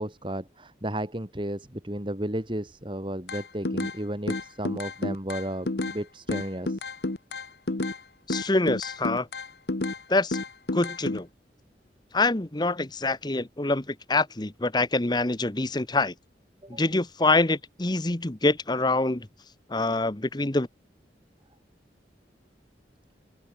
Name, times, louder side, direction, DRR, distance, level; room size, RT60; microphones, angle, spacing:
voice 1, 0.0-6.8 16.6-16.8, right 1 dB, 30° right, 3.0 m, -33 dB
sound 1, 3.3-4.0 4.3-6.0 6.3-8.0 8.3-10.0 10.3-11.2, left 2 dB, 65° left, 1.2 m, -30 dB
voice 2, 8.3-9.3 10.1-10.4 10.7-11.3 12.1-16.1 16.7-19.3 19.7-20.7, left 2 dB, 25° left, 1.0 m, -25 dB
open air
head